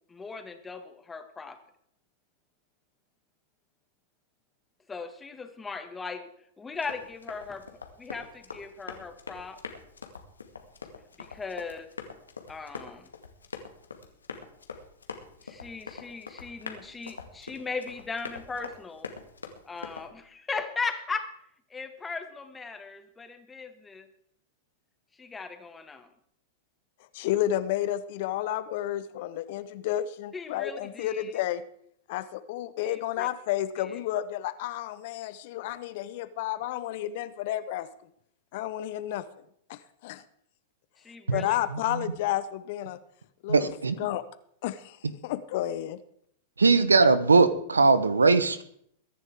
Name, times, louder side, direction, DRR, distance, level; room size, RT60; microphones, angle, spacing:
voice 1, 0.1-1.6 4.9-6.3 6.6-7.7 8.0-9.6 11.2-11.9 12.5-13.1 15.4-19.1 19.6-21.3 21.7-24.1 25.2-26.1 30.3-31.3 32.8-33.3 33.8-34.0 41.0-41.6, left 4 dB, 15° left, 1.9 m, -38 dB
Run, 6.7-20.1, left 5 dB, 85° left, 1.9 m, -44 dB
voice 2, 27.1-31.6 32.1-37.9 38.5-39.2 39.7-40.2 41.3-43.0 43.4-43.7 44.0-44.2 44.6-45.0 45.2-46.0, left 13 dB, 55° left, 0.9 m, -31 dB
voice 3, 43.5-43.9 46.6-48.6, right 4 dB, 85° right, 1.1 m, -20 dB
22.5 x 10.5 x 3.7 m
figure-of-eight pair, 100°, 0 cm